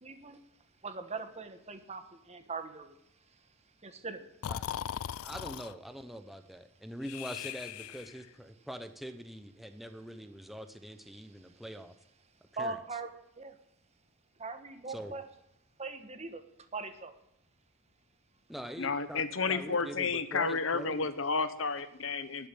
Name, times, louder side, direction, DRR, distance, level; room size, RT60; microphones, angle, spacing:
voice 1, 0.0-0.4 0.8-2.9 3.8-4.3 12.6-13.1 13.4-13.6 14.4-15.2 15.8-16.4 16.7-17.1, right 3 dB, 30° right, 9 dB, 1.2 m, -40 dB
Breathing, 4.4-5.7 7.0-8.3, left 9 dB, 85° left, 0.4 m, -39 dB
voice 2, 5.2-11.9 12.6-12.8 14.9-15.2 18.5-19.2 19.5-21.1, equal, ahead, 8 dB, 0.7 m, -43 dB
voice 3, 18.8-22.5, left 4 dB, 65° left, 12 dB, 1.0 m, -31 dB
12.0 x 6.9 x 9.7 m, 0.79 s
head